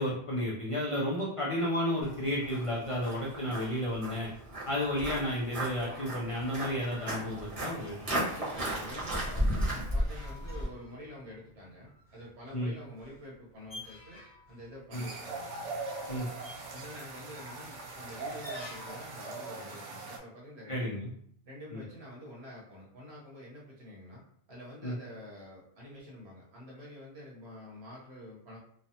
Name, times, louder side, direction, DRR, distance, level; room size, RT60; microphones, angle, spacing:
voice 1, 0.0-4.3 4.7-8.2 12.5-12.7 14.9-15.1 16.1-16.3 20.7-21.1 21.7-21.8 24.8-24.9, left 1 dB, 55° left, -4 dB, 0.3 m, -32 dB
Walk footsteps, 2.0-10.7, right 1 dB, 35° right, 0.9 m, -35 dB
voice 2, 8.3-14.2 14.5-15.5 16.7-20.9 21.4-24.2 24.5-28.6, left 1 dB, 65° right, -4 dB, 1.2 m, -47 dB
sound 1, 9.4-19.2, left 2 dB, 25° left, 0.8 m, -52 dB
sound 2, 14.9-20.2, right 3 dB, 85° right, 0.9 m, -41 dB
3.2 x 2.0 x 2.7 m, 0.66 s
omnidirectional pair, 1.2 m